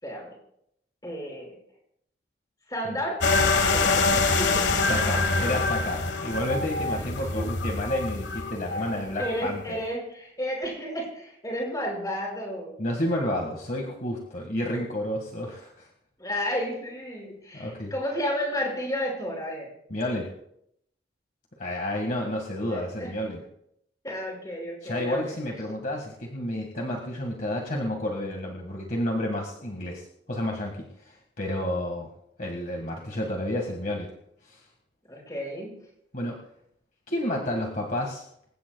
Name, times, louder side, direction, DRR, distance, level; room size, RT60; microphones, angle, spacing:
voice 1, 0.0-0.4 1.0-1.6 2.7-3.2 3.7-4.8 7.3-7.5 9.2-12.8 16.2-19.7 22.7-23.1 24.0-25.3 35.1-35.7, equal, 20° left, -1 dB, 5.7 m, -32 dB
sound 1, 3.2-9.4, left 3 dB, 80° left, 1.5 m, -25 dB
voice 2, 4.9-9.8 12.8-15.9 17.5-17.9 19.9-20.3 21.6-23.4 24.8-32.1 32.4-34.1 34.4-34.6 36.1-36.4 37.1-38.2, left 1 dB, 50° left, 1 dB, 1.8 m, -30 dB
26.5 x 16.0 x 2.3 m, 0.74 s
head